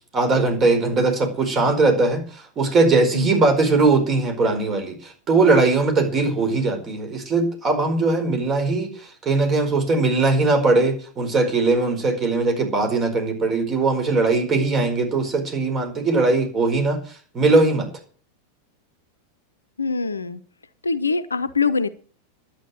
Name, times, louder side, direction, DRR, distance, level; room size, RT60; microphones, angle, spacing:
voice 1, 0.1-17.9, right 3 dB, 25° right, 6 dB, 4.7 m, -20 dB
voice 2, 19.8-20.4 20.8-21.9, left 4 dB, 75° left, 14 dB, 0.8 m, -23 dB
11.5 x 9.3 x 7.8 m, 0.44 s
figure-of-eight pair, 90°, 0 cm